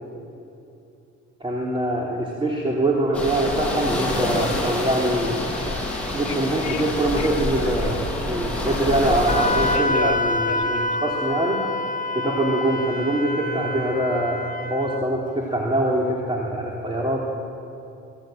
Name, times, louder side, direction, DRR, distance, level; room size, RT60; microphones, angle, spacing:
voice 1, 1.4-5.4 6.1-11.6 12.1-17.2, right 1 dB, 15° right, -3 dB, 3.3 m, -24 dB
sound 1, 3.1-9.8, left 1 dB, 5° left, 5.9 m, -27 dB
Telephone, 6.1-8.6 9.4-11.8, left 8 dB, 60° left, 1.7 m, -35 dB
Wind instrument woodwind instrument, 9.3-15.0, left 2 dB, 25° left, 1.3 m, -27 dB
23.5 x 15.5 x 9.2 m, 2.7 s
cardioid pair, 90°, 30 cm